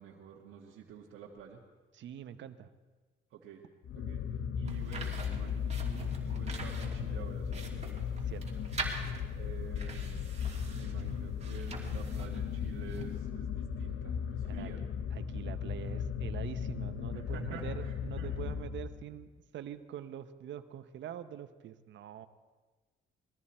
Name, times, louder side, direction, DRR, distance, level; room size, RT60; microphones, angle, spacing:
voice 1, 0.0-1.6 3.3-3.6 3.9-7.8 9.3-10.4 10.7-14.9 17.1-18.4, right 7 dB, 85° right, -3 dB, 1.6 m, -49 dB
voice 2, 1.9-2.7 8.3-8.6 14.4-14.7 15.1-22.3, right 10 dB, 70° right, 10 dB, 0.9 m, -44 dB
sound 1, 3.8-19.2, left 7 dB, 80° left, 0.8 m, -36 dB
sound 2, 4.7-13.2, right 4 dB, 35° right, 2.7 m, -45 dB
20.0 x 14.0 x 4.3 m, 1.3 s
cardioid pair, 90°, 20 cm